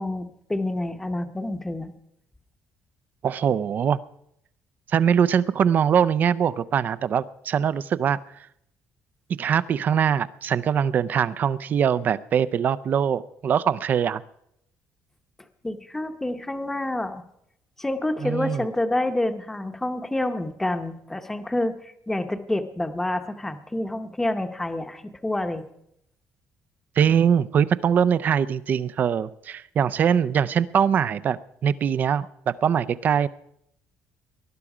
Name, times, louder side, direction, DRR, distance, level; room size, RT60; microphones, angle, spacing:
voice 1, 0.0-1.9 15.6-17.2 17.8-25.6, left 1 dB, 5° left, 8 dB, 0.8 m, -28 dB
voice 2, 3.2-4.0 4.9-8.2 9.4-14.2 18.2-18.7 27.0-33.3, right 8 dB, 35° right, 16 dB, 0.5 m, -22 dB
19.5 x 12.0 x 4.9 m, 0.76 s
cardioid pair, 175°, 5 cm